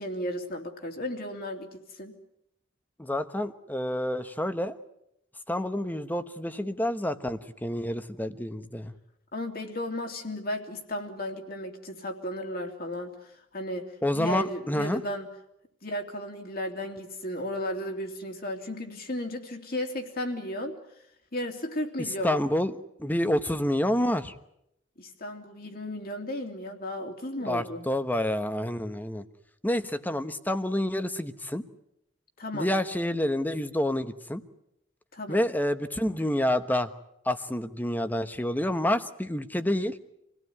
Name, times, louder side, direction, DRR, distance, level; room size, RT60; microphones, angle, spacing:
voice 1, 0.0-2.1 9.3-15.3 15.8-20.7 21.3-22.4 25.0-27.9 32.4-32.7 35.1-35.4, left 1 dB, 50° left, 3 dB, 3.1 m, -34 dB
voice 2, 3.0-4.8 5.5-8.9 14.0-15.0 22.2-24.3 27.4-29.2 29.6-31.6 32.5-34.4 35.3-36.9 37.2-40.0, left 1 dB, 10° left, 10 dB, 1.1 m, -28 dB
27.0 x 17.5 x 9.6 m, 0.82 s
head